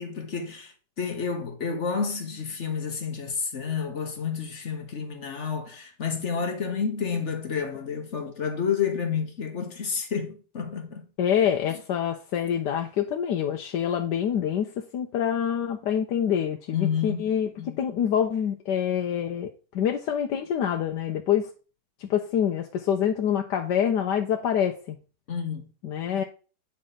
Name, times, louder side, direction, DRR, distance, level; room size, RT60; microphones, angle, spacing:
voice 1, 0.0-11.0 16.7-17.2 25.3-25.7, left 6 dB, 45° left, 1.3 m, -30 dB
voice 2, 11.2-21.5 22.0-25.0 25.8-26.2, left 9 dB, 80° left, 1.4 m, -26 dB
8.7 x 5.5 x 3.8 m
omnidirectional pair, 1.9 m